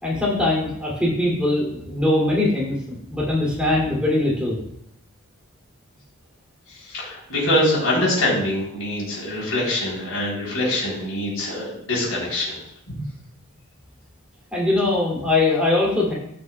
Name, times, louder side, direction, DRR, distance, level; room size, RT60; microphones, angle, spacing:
voice 1, 0.0-4.6 14.5-16.1, left 2 dB, 5° right, -5 dB, 2.8 m, -21 dB
voice 2, 6.7-12.6, left 1 dB, 70° left, -4 dB, 3.9 m, -24 dB
16.5 x 6.2 x 2.3 m, 0.74 s
head